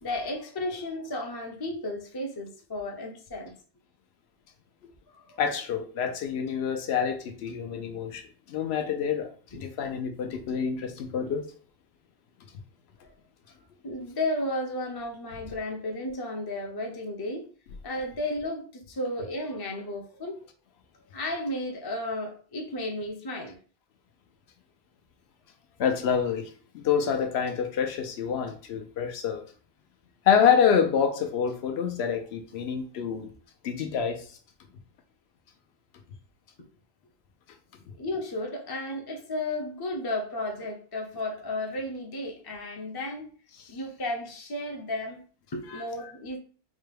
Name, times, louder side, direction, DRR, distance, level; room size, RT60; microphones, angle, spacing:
voice 1, 0.0-3.5 5.1-5.4 13.0-13.1 13.8-17.5 17.8-20.4 21.1-23.6 38.0-43.3 43.7-45.2 45.5-46.4, left 1 dB, 35° left, 0.4 m, -33 dB
voice 2, 5.4-11.5 25.8-26.5 26.7-29.5 30.2-33.3 33.6-34.4 45.7-45.8, left 7 dB, 85° left, 0.8 m, -27 dB
4.0 x 2.2 x 3.3 m
omnidirectional pair, 1.1 m